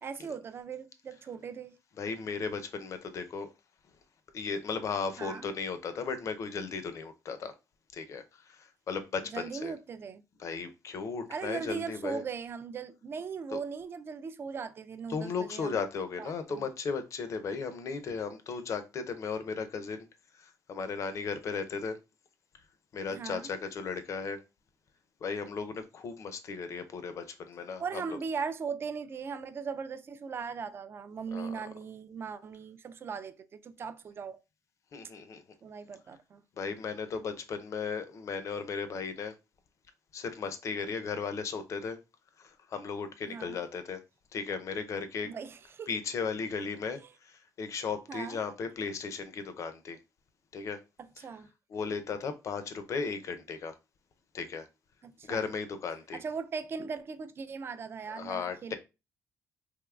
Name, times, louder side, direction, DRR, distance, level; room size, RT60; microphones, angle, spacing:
voice 1, 0.0-1.8 5.2-5.5 9.3-10.2 11.3-15.8 16.2-16.7 23.1-23.5 27.8-34.4 35.6-36.4 43.3-43.6 45.2-45.9 47.0-47.1 48.1-48.4 51.2-51.5 55.0-55.5 56.1-58.7, right 5 dB, 35° right, 0.3 m, -39 dB
voice 2, 2.0-3.5 4.3-7.5 7.9-9.7 10.4-12.2 13.5-13.6 15.1-20.1 20.4-22.0 22.9-24.4 25.2-28.2 31.3-31.6 34.9-35.4 36.6-39.3 40.1-42.0 42.4-44.0 44.3-45.3 45.9-50.0 50.5-50.8 51.2-51.3 51.7-53.7 54.3-54.7 55.2-56.2 58.1-58.7, left 5 dB, 50° left, 0.5 m, -36 dB
3.5 x 3.0 x 2.3 m
cardioid pair, 110°, 7 cm